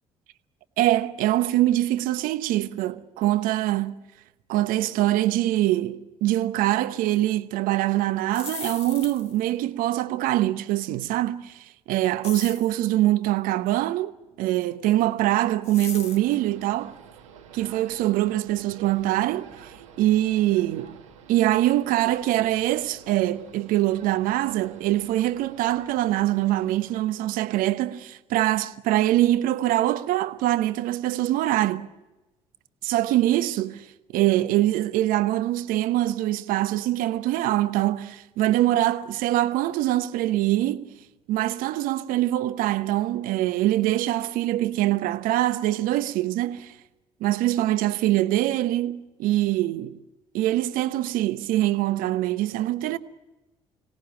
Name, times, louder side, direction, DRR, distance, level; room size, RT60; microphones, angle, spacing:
voice 1, 0.8-4.0 4.5-11.5 11.9-14.1 14.4-17.0 17.5-21.0 21.3-31.9 32.8-33.9 34.1-41.0 41.3-46.7 47.2-50.0 50.3-53.0, right 15 dB, 65° right, 1.0 m, -24 dB
sound 1, 8.2-9.4 12.2-12.8 15.6-16.3, left 4 dB, 45° left, 2.7 m, -37 dB
sound 2, 15.9-27.0, right 8 dB, 90° right, 1.7 m, -49 dB
25.0 x 18.0 x 9.2 m
hypercardioid pair, 55°, 15 cm